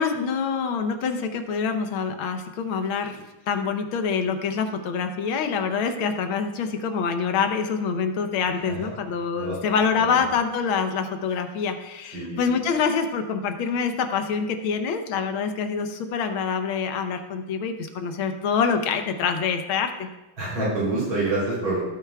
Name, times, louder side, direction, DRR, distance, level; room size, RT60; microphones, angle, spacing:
voice 1, 0.0-20.1, left 6 dB, 75° left, 7 dB, 1.7 m, -26 dB
voice 2, 12.1-12.4 20.4-21.8, right 2 dB, 70° right, -7 dB, 4.1 m, -27 dB
17.0 x 9.1 x 2.3 m, 1.1 s
omnidirectional pair, 2.3 m